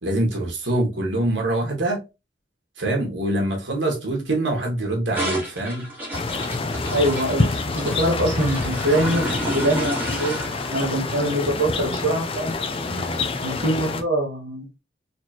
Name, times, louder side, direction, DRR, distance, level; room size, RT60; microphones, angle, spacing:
voice 1, 0.0-2.0 2.8-5.9 12.8-13.2, right 1 dB, 90° right, 1.6 m, -24 dB
sound 1, 5.1-13.4, right 1 dB, 10° right, 1.5 m, -32 dB
sound 2, 6.1-14.0, left 3 dB, 30° left, 0.5 m, -27 dB
voice 2, 6.9-10.4 10.7-12.6 13.4-14.7, right 1 dB, 65° right, 1.2 m, -24 dB
4.2 x 3.2 x 2.9 m
head